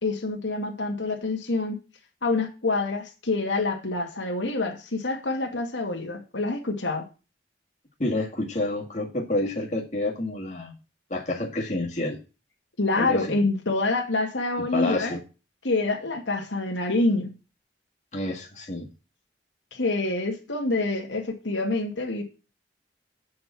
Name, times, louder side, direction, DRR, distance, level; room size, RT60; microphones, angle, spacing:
voice 1, 0.0-1.8 2.2-7.0 12.8-15.1 15.6-17.3 19.7-22.2, left 2 dB, 85° left, 2 dB, 2.1 m, -26 dB
voice 2, 8.0-10.7 11.1-12.2 13.0-13.3 14.7-15.2 18.1-18.9, left 2 dB, 40° left, -1 dB, 2.0 m, -28 dB
7.7 x 5.6 x 7.3 m, 0.31 s
head